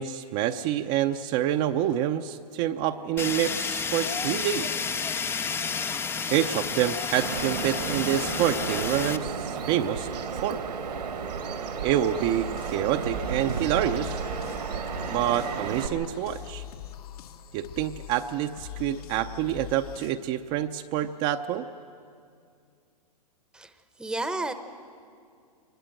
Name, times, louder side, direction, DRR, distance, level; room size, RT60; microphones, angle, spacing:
voice 1, 0.0-4.7 6.3-10.1 10.4-10.6 11.8-14.2 15.1-16.6 17.5-21.6, right 11 dB, 35° right, 6 dB, 0.6 m, -27 dB
Fire, 3.2-9.2, left 6 dB, 10° left, 0.5 m, -31 dB
Bird vocalization bird call bird song, 7.2-15.9, right 6 dB, 85° right, 2.2 m, -33 dB
sound 1, 11.9-20.1, left 10 dB, 65° left, 1.6 m, -43 dB
voice 2, 24.0-24.5, right 2 dB, 5° right, 10 dB, 0.9 m, -31 dB
24.0 x 20.5 x 7.9 m, 2.3 s
hypercardioid pair, 130°, 21 cm